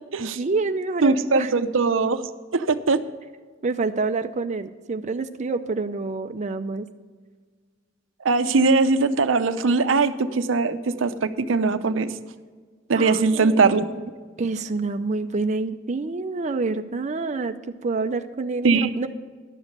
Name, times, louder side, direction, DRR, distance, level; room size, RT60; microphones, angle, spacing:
voice 1, 0.2-1.5 3.6-6.9 12.9-13.9 14.4-19.1, right 3 dB, 40° right, 7 dB, 0.5 m, -27 dB
voice 2, 1.0-2.2 2.5-3.0 8.2-12.1 12.9-13.9 18.6-18.9, right 4 dB, 90° right, 11 dB, 0.6 m, -20 dB
11.5 x 7.2 x 6.5 m, 1.5 s
head